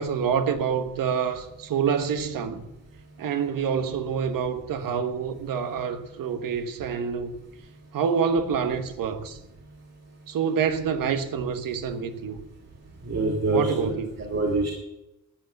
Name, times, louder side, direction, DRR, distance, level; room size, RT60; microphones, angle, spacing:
voice 1, 0.0-2.6 3.2-7.4 7.9-9.4 10.3-12.4 13.5-14.1, right 6 dB, 85° right, 1.3 m, -27 dB
voice 2, 13.0-14.7, right 2 dB, 50° right, 2.7 m, -26 dB
12.5 x 8.2 x 8.0 m
wide cardioid pair, 120°, 33 cm